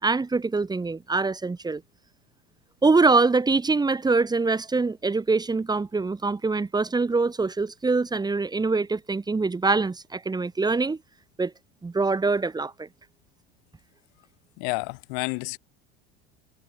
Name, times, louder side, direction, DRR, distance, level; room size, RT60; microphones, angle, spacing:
voice 1, 0.0-1.8 2.8-11.0 11.4-11.5 11.8-12.9, right 3 dB, 10° right, 3.0 m, -24 dB
voice 2, 14.6-15.6, left 40 dB or more, 65° left, 6.0 m, -30 dB
supercardioid pair, 130°, 32 cm